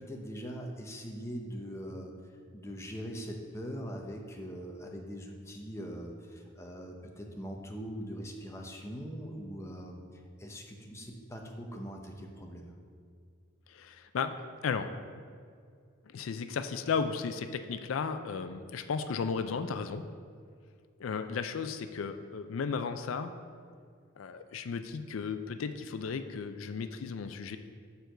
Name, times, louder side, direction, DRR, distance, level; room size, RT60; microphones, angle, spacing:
voice 1, 0.0-2.1 2.5-12.7, equal, 15° left, 1 dB, 0.7 m, -42 dB
voice 2, 13.7-14.3 14.6-14.9 16.1-20.0 21.0-23.3 24.2-27.6, left 5 dB, 85° left, 9 dB, 0.4 m, -34 dB
6.9 x 4.5 x 6.5 m, 2.2 s
head